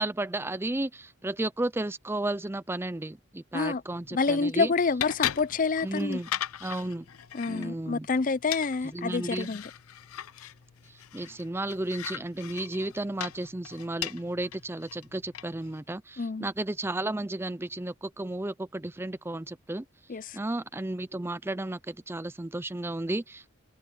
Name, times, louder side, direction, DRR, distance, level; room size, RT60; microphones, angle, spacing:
voice 1, 0.0-4.7 5.8-6.3 6.6-7.1 7.5-8.1 8.9-9.5 10.9-19.9 20.3-23.4, right 2 dB, 10° right, 0.5 m, -33 dB
sound 1, 3.9-15.8, left 11 dB, 85° left, 0.6 m, -39 dB
voice 2, 4.1-6.2 7.3-9.6 16.2-16.5 20.1-20.4, left 4 dB, 40° left, 0.5 m, -28 dB
head